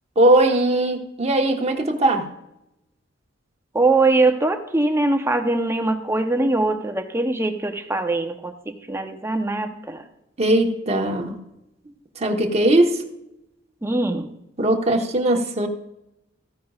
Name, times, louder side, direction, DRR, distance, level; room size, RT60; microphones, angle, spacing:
voice 1, 0.2-2.3 10.4-11.4 12.2-13.0 14.6-15.7, right 1 dB, 35° right, 3 dB, 1.2 m, -19 dB
voice 2, 3.7-8.5 8.9-10.0 13.8-14.3, right 2 dB, 15° right, 6 dB, 0.8 m, -22 dB
15.0 x 10.0 x 2.4 m, 0.86 s
head